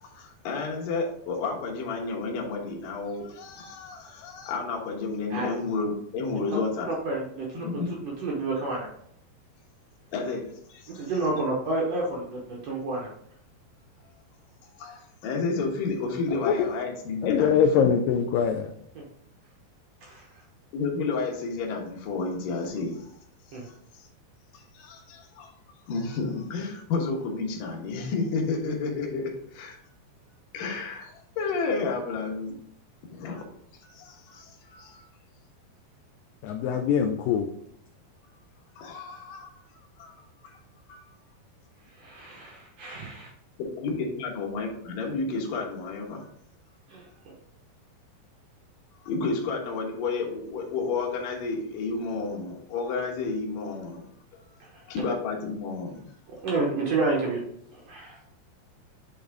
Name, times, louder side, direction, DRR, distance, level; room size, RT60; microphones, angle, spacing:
voice 1, 0.0-6.9 7.6-7.9 10.1-10.4 10.7-11.1 14.8-17.9 20.7-23.1 23.9-24.1 24.5-25.5 25.9-29.8 30.5-32.5 33.1-33.4 33.8-35.0 38.8-39.5 40.0-40.6 40.9-41.0 43.8-46.3 49.1-54.0 54.9-56.0, left 4 dB, 65° left, -1 dB, 2.6 m, -31 dB
voice 2, 6.9-8.9 10.9-13.1 18.9-19.0 20.0-20.4 23.5-23.7 41.9-42.5 42.8-43.3 46.9-47.3 54.6-55.1 56.3-57.4 57.7-58.2, right 2 dB, 85° right, -2 dB, 1.4 m, -30 dB
voice 3, 17.2-18.7 36.4-37.5, left 7 dB, 90° left, 6 dB, 1.9 m, -23 dB
8.4 x 3.9 x 3.5 m, 0.70 s
omnidirectional pair, 4.5 m